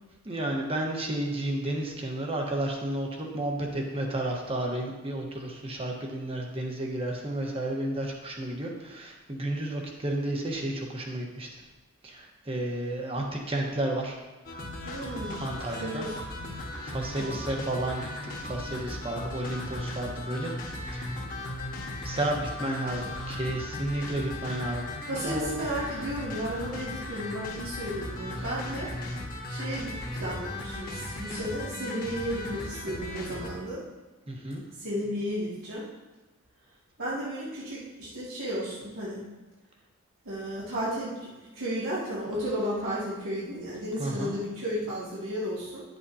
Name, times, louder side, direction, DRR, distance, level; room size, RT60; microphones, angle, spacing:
voice 1, 0.2-11.5 12.0-14.2 15.4-16.1 16.8-18.1 18.4-20.5 20.8-21.1 22.0-24.8 25.2-25.5 28.4-28.5 34.3-34.6 44.0-44.3, right 1 dB, 25° right, 0 dB, 1.2 m, -32 dB
sound 1, 14.4-33.5, left 1 dB, 40° left, 1.5 m, -37 dB
voice 2, 14.8-15.4 15.8-16.3 17.2-17.4 25.1-28.9 29.5-33.8 34.8-35.8 37.0-39.2 40.2-41.3 41.5-45.8, equal, 85° right, -10 dB, 2.5 m, -33 dB
10.5 x 8.0 x 2.8 m, 1.2 s
head